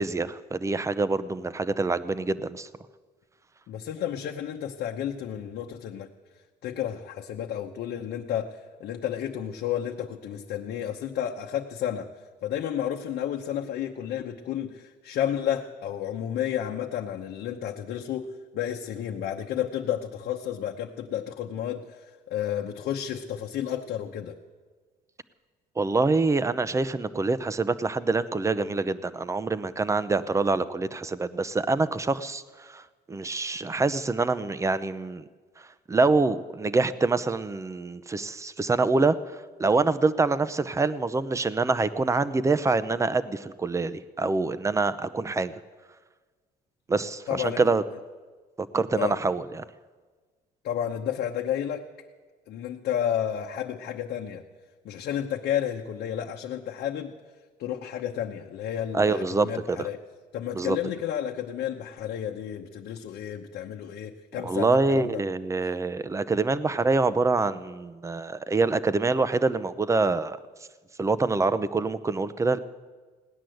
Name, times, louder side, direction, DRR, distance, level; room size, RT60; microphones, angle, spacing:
voice 1, 0.0-2.7 25.8-32.8 33.1-35.2 35.9-39.2 39.6-45.5 46.9-47.8 48.6-49.6 58.9-59.9 60.5-60.8 64.4-70.4 71.0-72.6, right 3 dB, 15° right, 15 dB, 0.7 m, -25 dB
voice 2, 3.7-6.1 6.6-12.1 12.4-18.3 18.5-24.4 47.3-47.7 48.9-49.2 50.6-51.8 52.5-54.4 54.8-57.1 57.6-60.0 60.3-65.2, left 10 dB, 70° left, 0 dB, 1.0 m, -31 dB
17.5 x 10.0 x 7.8 m, 1.4 s
cardioid pair, 110°, 17 cm